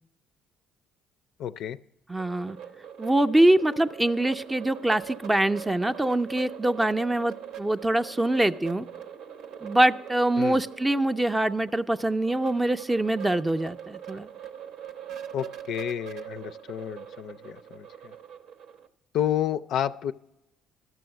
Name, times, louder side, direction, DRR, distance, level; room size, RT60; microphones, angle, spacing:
voice 1, 1.4-1.8 10.4-10.6 15.3-18.1 19.1-20.1, left 10 dB, 70° left, 11 dB, 0.4 m, -30 dB
voice 2, 2.1-2.6 3.0-8.9 9.6-14.3, right 1 dB, 10° right, 9 dB, 0.4 m, -24 dB
sound 1, 2.2-18.9, right 9 dB, 75° right, 0.8 m, -42 dB
12.0 x 6.2 x 7.9 m, 0.89 s
cardioid pair, 100°, 0 cm